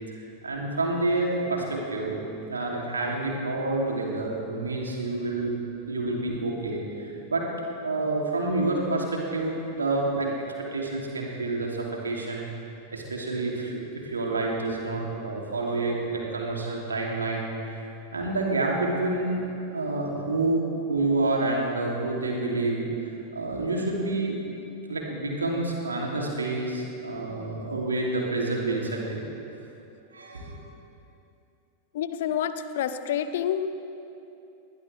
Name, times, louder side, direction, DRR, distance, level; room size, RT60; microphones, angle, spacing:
voice 1, 0.1-2.2 2.5-5.5 5.9-7.5 7.8-10.4 10.7-12.5 12.9-17.8 18.1-24.4 24.9-29.2 30.1-30.5, right 2 dB, 75° right, -1 dB, 2.9 m, -28 dB
voice 2, 31.9-33.7, left 9 dB, 55° left, 11 dB, 0.7 m, -28 dB
21.0 x 19.0 x 3.4 m, 2.8 s
figure-of-eight pair, 90°, 0 cm